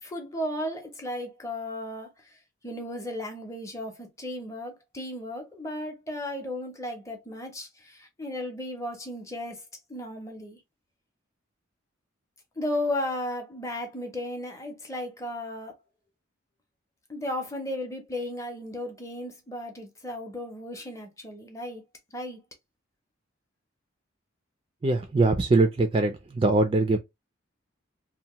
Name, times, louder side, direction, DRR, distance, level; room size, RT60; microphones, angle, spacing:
voice 1, 0.0-2.4 2.6-9.6 9.9-10.6 12.6-15.7 17.1-21.8 22.1-22.4, left 1 dB, 15° left, 0.6 m, -35 dB
voice 2, 24.8-27.0, right 2 dB, 25° right, 0.3 m, -22 dB
2.8 x 2.1 x 2.9 m
head